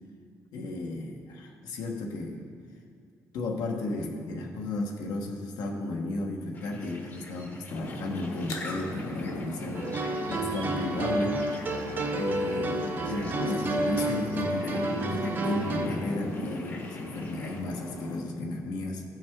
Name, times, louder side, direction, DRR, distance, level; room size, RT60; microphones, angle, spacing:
voice 1, 0.5-2.4 3.3-11.4 12.1-19.0, left 2 dB, 85° left, 1 dB, 1.1 m, -34 dB
sound 1, 6.5-17.6, left 2 dB, 30° left, 0.8 m, -48 dB
sound 2, 7.7-18.2, left 1 dB, 65° left, 1.1 m, -37 dB
sound 3, 9.7-15.9, right 2 dB, 30° right, 0.6 m, -30 dB
14.0 x 6.1 x 3.6 m, 2.2 s
cardioid pair, 160°, 6 cm